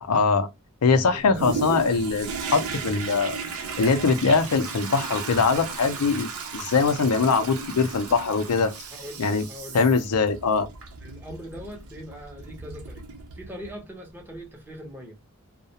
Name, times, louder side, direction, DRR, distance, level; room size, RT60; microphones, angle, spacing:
voice 1, 0.0-0.5 0.8-3.4 3.8-8.7 9.2-9.5 9.7-10.7, left 4 dB, 85° left, 0.5 m, -22 dB
voice 2, 1.0-1.6 8.8-9.8 11.0-13.1 13.3-15.2, equal, 10° right, 0.7 m, -41 dB
Toilet flush, 1.4-13.8 14.3-14.4, right 5 dB, 75° right, 0.6 m, -35 dB
2.3 x 2.1 x 2.7 m
head